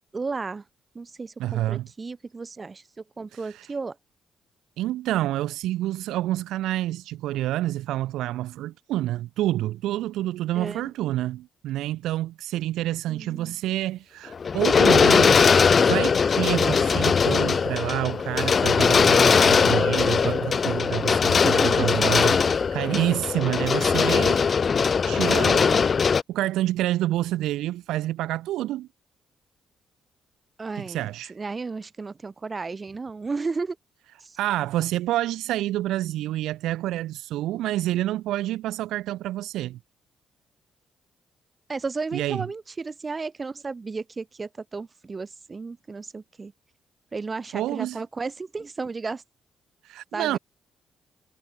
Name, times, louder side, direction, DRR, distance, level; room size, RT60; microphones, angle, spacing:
voice 1, 0.1-0.6 0.9-4.0 10.5-10.9 13.1-13.5 21.4-21.9 30.6-33.8 34.2-34.4 41.7-46.5 47.1-49.2 50.1-50.4, right 4 dB, 35° right, 1.4 m, -33 dB
voice 2, 1.4-1.9 3.3-3.7 4.8-15.5 15.8-24.4 25.0-28.9 30.8-31.3 34.4-39.8 42.1-42.5 47.5-48.0 49.8-50.4, right 14 dB, 75° right, 0.5 m, -28 dB
sound 1, 14.3-26.2, left 5 dB, 50° left, 0.4 m, -20 dB
hypercardioid pair, 50°, 0 cm